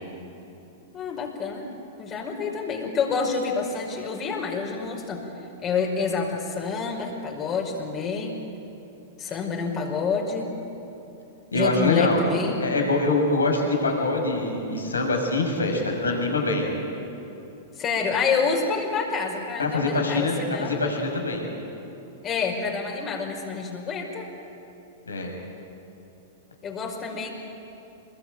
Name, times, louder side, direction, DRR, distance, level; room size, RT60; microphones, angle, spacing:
voice 1, 0.9-1.7 2.0-5.2 5.6-8.4 9.2-10.5 11.5-12.7 17.8-20.8 22.2-24.3 26.6-27.3, left 5 dB, 30° left, 0 dB, 5.3 m, -28 dB
voice 2, 11.5-12.2 12.6-16.7 19.6-21.4 25.1-25.3, left 2 dB, 85° left, 2 dB, 6.2 m, -24 dB
27.0 x 22.0 x 9.2 m, 2.9 s
hypercardioid pair, 105°, 0 cm